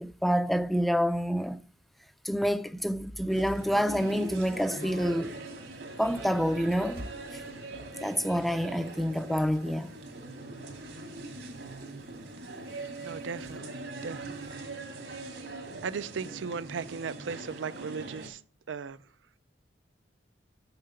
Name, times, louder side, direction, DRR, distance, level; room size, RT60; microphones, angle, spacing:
voice 1, 0.0-1.6 2.2-5.4 6.0-7.0 8.0-9.9, equal, ahead, 0.4 m, -28 dB
sound 1, 3.3-18.3, right 2 dB, 70° right, 2.1 m, -42 dB
sound 2, 6.5-8.2 8.6-8.8 9.4-9.7, right 1 dB, 55° right, 1.0 m, -49 dB
voice 2, 13.0-14.6 15.8-18.4 18.7-19.0, right 5 dB, 90° right, 0.5 m, -37 dB
6.7 x 6.6 x 6.9 m
head